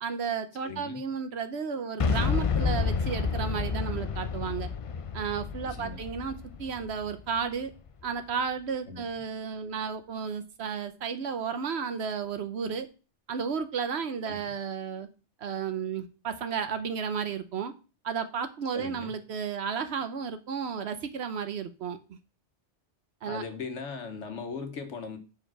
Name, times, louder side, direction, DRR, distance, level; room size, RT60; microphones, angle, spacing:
voice 1, 0.0-4.7 5.1-7.7 8.0-12.9 13.3-15.1 15.4-17.7 18.0-22.2 23.2-23.4, right 6 dB, 65° right, 1.0 m, -33 dB
voice 2, 0.6-1.0 5.6-6.0 8.9-9.1 14.2-14.5 18.7-19.1 23.2-25.2, left 4 dB, 75° left, 1.3 m, -39 dB
Boom, 2.0-7.9, left 5 dB, 50° left, 0.4 m, -30 dB
5.2 x 4.8 x 5.9 m
omnidirectional pair, 1.2 m